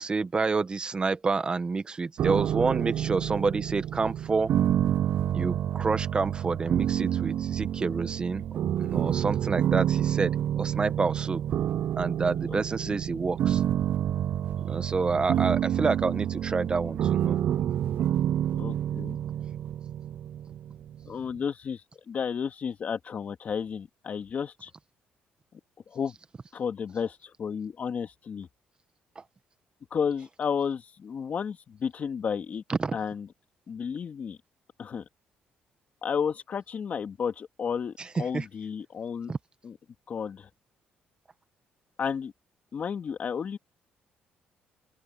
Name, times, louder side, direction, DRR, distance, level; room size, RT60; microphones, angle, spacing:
voice 1, 0.0-4.5 5.3-8.4 8.8-11.4 12.0-13.6 14.6-17.4 32.7-33.0 38.0-38.1 38.3-38.4 39.3-39.4, right 4 dB, 25° right, 1.2 m, -28 dB
sound 1, 2.2-21.1, right 10 dB, 60° right, 0.3 m, -28 dB
voice 2, 18.6-19.2 21.1-24.7 25.9-26.2 26.5-28.5 29.9-32.6 32.9-33.3 33.7-34.4 34.8-35.0 36.0-39.3 39.6-39.8 40.1-40.5 42.0-42.3 42.7-43.6, left 6 dB, 45° left, 2.1 m, -32 dB
open air
cardioid pair, 110°, 4 cm